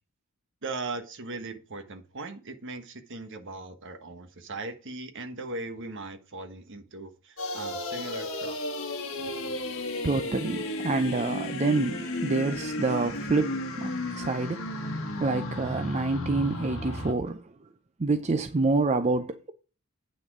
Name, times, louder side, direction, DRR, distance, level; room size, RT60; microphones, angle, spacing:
voice 1, 0.6-8.9, right 2 dB, 60° right, 1.4 m, -39 dB
sound 1, 7.4-17.1, left 2 dB, 60° left, 1.8 m, -34 dB
voice 2, 10.0-17.5 18.0-19.5, right 3 dB, 30° right, 0.5 m, -27 dB
8.8 x 6.2 x 4.8 m
head